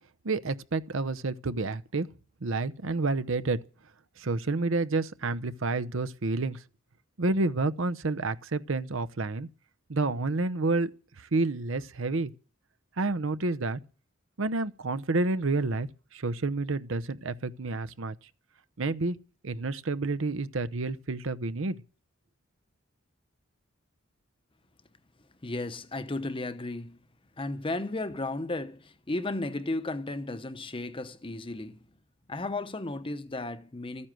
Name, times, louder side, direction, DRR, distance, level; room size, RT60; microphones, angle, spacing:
voice 1, 0.2-2.1 2.4-3.6 4.2-6.6 7.2-9.5 9.9-10.9 11.2-12.3 13.0-13.8 14.4-18.2 18.8-19.2 19.4-21.8, right 3 dB, 65° right, 0.8 m, -29 dB
voice 2, 25.4-27.0 27.4-31.8 32.3-34.1, left 2 dB, 25° left, 0.8 m, -34 dB
14.0 x 9.8 x 7.7 m
head